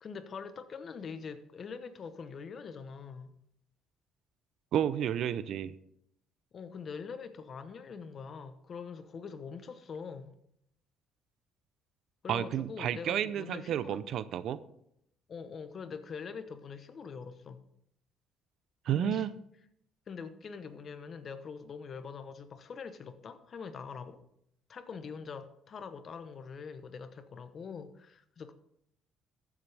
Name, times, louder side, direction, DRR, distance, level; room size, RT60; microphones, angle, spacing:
voice 1, 0.0-3.3 6.5-10.3 12.2-14.0 15.3-17.6 18.9-19.3 20.1-24.2 24.7-28.5, left 5 dB, 45° left, 0.9 m, -43 dB
voice 2, 4.7-5.7 12.3-14.6 18.8-19.3, right 10 dB, 65° right, 0.5 m, -31 dB
14.0 x 7.3 x 3.4 m
supercardioid pair, 85°, 0 cm